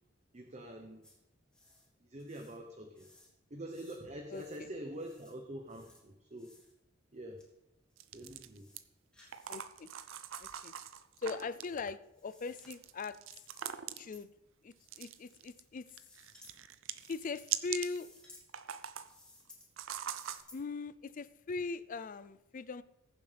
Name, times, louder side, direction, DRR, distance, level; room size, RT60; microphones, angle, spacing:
voice 1, 0.3-1.1 2.0-3.1 3.5-6.5 7.1-7.4 8.1-8.7, right 1 dB, 35° right, 4 dB, 0.9 m, -45 dB
sound 1, 1.0-1.2 1.5-1.9 2.2-2.6 3.0-3.3 3.6-4.0 4.3-4.6 4.9-5.3 5.7-6.0 6.4-6.7 7.4-7.5 7.9-8.0 8.4-8.8 9.1-9.6 9.8-10.6 11.5-12.7 13.3-13.7 14.1-14.2 14.7-15.6 15.9-16.5 16.9-17.5 17.8-18.4 19.0-19.7 20.0-20.6, left 2 dB, 5° left, 2.6 m, -61 dB
voice 2, 4.3-4.7 9.5-9.9 10.4-10.7 11.2-13.2 14.0-14.3 14.6-15.9 17.1-18.1 20.5-22.8, left 4 dB, 40° left, 14 dB, 0.4 m, -40 dB
sound 2, 8.0-8.8 9.3-11.7 12.6-14.2 14.9-15.6 15.9-18.0 18.4-19.1 19.8-20.4, right 10 dB, 70° right, 0.6 m, -42 dB
21.0 x 7.3 x 3.4 m, 0.96 s
head